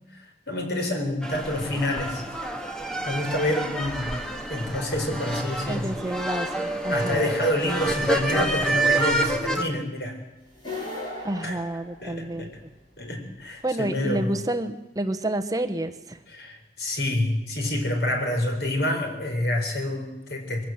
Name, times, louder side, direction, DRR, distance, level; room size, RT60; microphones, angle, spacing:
voice 1, 0.5-2.2 3.0-4.1 4.5-5.9 6.9-10.2 11.4-11.6 12.0-12.6 13.0-14.3 16.3-20.6, left 1 dB, 70° left, 3 dB, 4.4 m, -27 dB
sound 1, 1.2-9.6, right 2 dB, 5° left, 1.8 m, -28 dB
voice 2, 5.7-7.3 11.2-12.5 13.6-16.2, right 1 dB, 20° right, 8 dB, 1.0 m, -29 dB
sound 2, 10.5-12.6, left 2 dB, 25° left, 7.6 m, -37 dB
22.5 x 16.0 x 7.4 m, 1.1 s
head